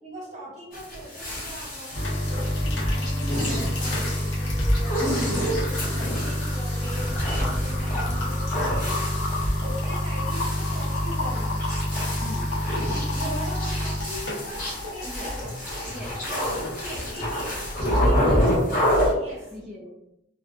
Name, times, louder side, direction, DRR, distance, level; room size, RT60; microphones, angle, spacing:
voice 1, 0.0-9.1 9.5-11.5 13.1-15.5 16.2-19.5, equal, 40° right, -6 dB, 1.1 m, -40 dB
sound 1, 0.7-19.1, equal, 50° left, 1.0 m, -28 dB
sound 2, 1.9-18.0, left 1 dB, 80° left, 0.7 m, -29 dB
voice 2, 12.2-12.6 15.0-15.3 15.8-16.4 17.9-18.5 19.4-19.9, left 1 dB, ahead, -8 dB, 0.3 m, -40 dB
2.4 x 2.3 x 2.4 m, 0.86 s
head